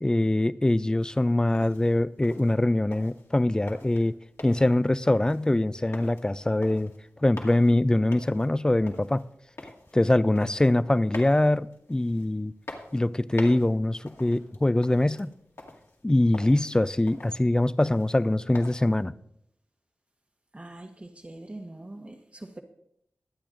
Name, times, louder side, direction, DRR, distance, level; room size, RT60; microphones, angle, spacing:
voice 1, 0.0-4.2 4.4-6.9 7.2-9.2 9.9-12.5 12.9-15.3 16.0-19.1, left 1 dB, 15° left, 0.4 m, -23 dB
sound 1, 1.0-19.0, left 2 dB, 65° left, 2.0 m, -47 dB
voice 2, 20.5-22.6, right 1 dB, 25° right, 1.0 m, -43 dB
22.5 x 8.6 x 2.5 m
wide cardioid pair, 80°, 5 cm